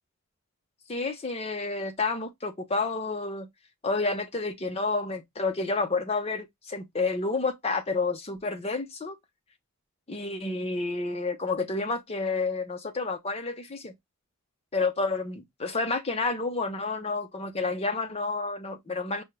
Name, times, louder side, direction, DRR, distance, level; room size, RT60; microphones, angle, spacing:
voice 1, 0.9-3.5 3.8-9.2 10.1-13.9 14.7-19.2, left 3 dB, 30° left, 0.7 m, -30 dB
5.3 x 2.3 x 3.1 m
head